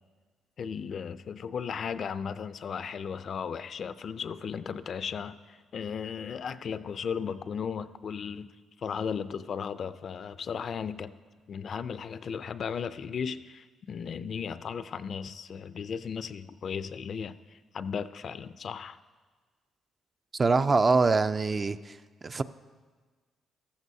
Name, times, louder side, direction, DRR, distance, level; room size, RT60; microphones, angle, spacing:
voice 1, 0.6-8.5 8.8-11.1 11.5-19.0, left 6 dB, 55° left, 0.4 m, -36 dB
voice 2, 20.4-21.8 22.2-22.4, right 4 dB, 30° right, 0.4 m, -23 dB
14.5 x 13.5 x 2.7 m
cardioid pair, 90°, 0 cm